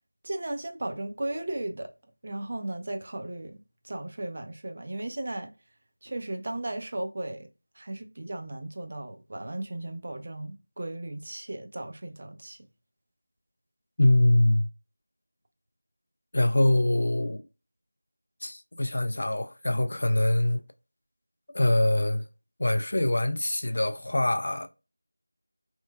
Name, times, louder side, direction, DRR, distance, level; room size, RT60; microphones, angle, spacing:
voice 1, 0.2-1.9 2.2-3.6 3.8-5.5 6.0-7.5 7.8-12.6, right 1 dB, 40° right, 0.4 m, -35 dB
voice 2, 14.0-14.7 16.3-17.4 18.4-20.6 21.5-22.2 22.6-24.7, left 1 dB, 50° left, 0.3 m, -24 dB
2.9 x 2.1 x 2.2 m
figure-of-eight pair, 175°, 0 cm